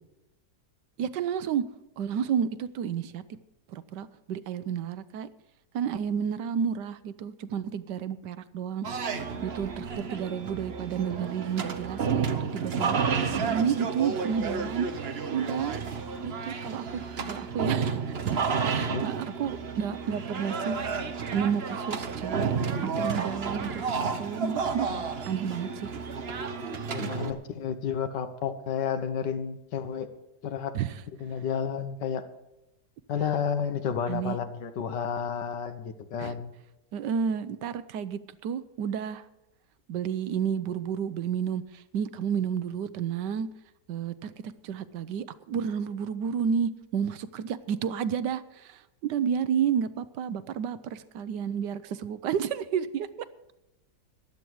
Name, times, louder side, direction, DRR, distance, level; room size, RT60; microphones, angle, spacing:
voice 1, 1.0-1.6 2.0-3.2 3.7-5.3 5.7-8.9 9.4-13.0 13.3-14.9 15.3-15.8 16.2-18.3 18.6-20.8 21.3-22.6 22.8-23.9 24.2-24.9 25.3-25.9 27.0-27.1 30.7-30.9 33.2-33.3 34.1-34.4 36.2-36.3 36.9-39.2 39.9-43.5 43.9-44.3 44.6-53.1, right 7 dB, 85° right, 14 dB, 1.3 m, -31 dB
sound 1, 8.8-27.3, right 5 dB, 45° right, 1.0 m, -31 dB
voice 2, 26.9-30.1 30.4-30.7 31.2-32.2 33.1-36.5, left 7 dB, 85° left, 10 dB, 1.7 m, -31 dB
15.0 x 11.0 x 4.7 m, 0.94 s
omnidirectional pair, 1.8 m